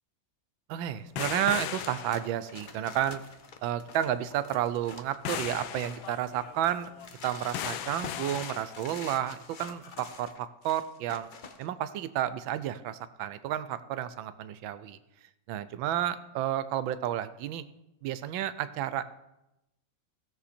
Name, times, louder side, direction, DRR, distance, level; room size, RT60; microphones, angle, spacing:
voice 1, 0.7-3.2 3.6-6.9 7.2-11.3 11.6-15.0 15.5-17.6 18.0-19.1, right 11 dB, 85° right, 14 dB, 1.4 m, -31 dB
sound 1, 1.2-2.7 5.2-9.3 10.2-10.3, left 11 dB, 90° left, 1.4 m, -38 dB
sound 2, 1.8-6.2 6.6-11.7, left 4 dB, 60° left, 0.5 m, -46 dB
16.0 x 7.0 x 4.3 m, 0.92 s
omnidirectional pair, 2.1 m